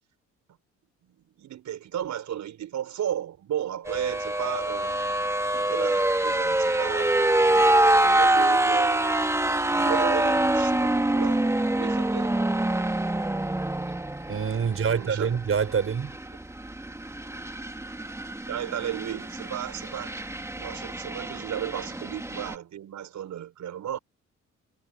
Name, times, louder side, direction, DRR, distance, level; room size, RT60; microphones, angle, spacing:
voice 1, 1.0-5.2 5.5-7.2 7.5-9.2 9.7-12.4 14.6-15.3 18.5-20.2 20.5-24.0, right 10 dB, 70° right, 6.7 m, -34 dB
sound 1, 3.9-22.5, right 1 dB, 10° right, 1.9 m, -25 dB
voice 2, 14.3-16.2, right 6 dB, 45° right, 6.2 m, -26 dB
cardioid pair, 90°, 30 cm